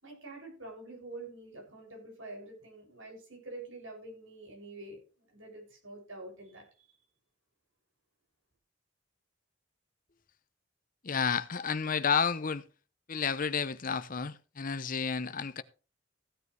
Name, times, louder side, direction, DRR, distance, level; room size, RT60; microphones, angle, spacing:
voice 1, 0.0-5.0 5.3-6.9, right 2 dB, 80° right, 6.9 m, -46 dB
voice 2, 11.0-12.6 13.1-15.6, left 6 dB, 45° left, 0.7 m, -31 dB
15.5 x 9.6 x 3.3 m
head